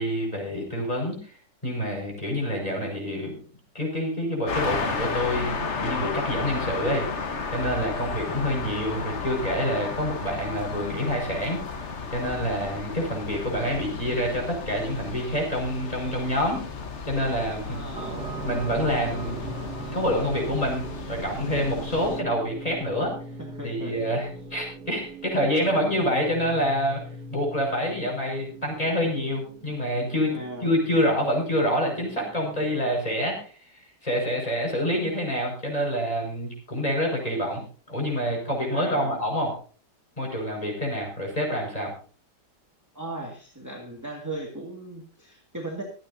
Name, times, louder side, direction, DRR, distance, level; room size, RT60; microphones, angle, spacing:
voice 1, 0.0-1.3 1.6-3.4 3.7-11.6 12.1-16.7 17.0-17.9 18.4-19.4 19.9-23.1 23.6-27.0 27.3-33.5 34.0-37.6 37.9-39.6 40.2-41.9, equal, 20° left, 0 dB, 5.9 m, -27 dB
sound 1, 4.5-22.2, left 4 dB, 45° left, 1.5 m, -33 dB
voice 2, 17.6-18.2 23.4-24.0 30.3-30.7 38.7-39.2 42.9-45.8, right 2 dB, 10° right, -1 dB, 2.2 m, -37 dB
sound 2, 17.9-33.3, right 2 dB, 70° right, 2.7 m, -40 dB
25.5 x 8.9 x 2.7 m, 0.40 s
omnidirectional pair, 1.8 m